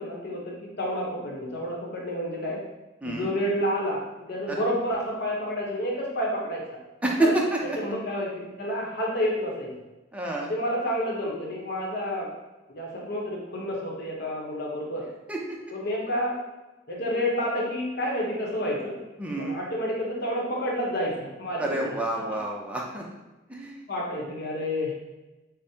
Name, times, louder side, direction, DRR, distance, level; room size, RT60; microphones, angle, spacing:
voice 1, 0.0-2.6 3.0-4.0 4.3-6.6 7.2-7.3 7.8-8.3 8.6-9.7 10.5-12.3 12.7-15.0 15.7-16.4 16.9-19.0 19.4-22.4 23.9-24.9, equal, 55° left, -3 dB, 0.9 m, -29 dB
voice 2, 3.0-3.3 4.5-4.6 7.0-7.8 10.1-10.5 15.3-15.4 19.2-19.6 21.6-23.0 23.5-23.8, right 2 dB, 5° right, -2 dB, 0.5 m, -28 dB
5.0 x 2.1 x 2.8 m, 1.1 s
head